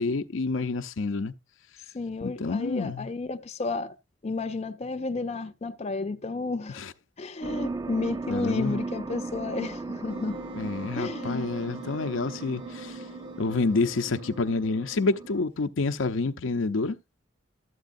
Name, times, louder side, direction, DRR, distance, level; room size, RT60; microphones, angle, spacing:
voice 1, 0.0-1.3 2.2-3.1 6.8-6.9 8.3-8.8 10.5-13.0 13.4-17.0, left 3 dB, 90° left, 0.7 m, -28 dB
voice 2, 1.9-4.0 4.2-6.8 7.2-10.4 11.0-11.5, left 3 dB, 35° left, 0.5 m, -32 dB
sound 1, 7.4-15.4, right 3 dB, 20° right, 0.4 m, -37 dB
Wind instrument woodwind instrument, 10.1-15.5, right 4 dB, 80° right, 3.1 m, -45 dB
12.5 x 8.3 x 2.6 m
head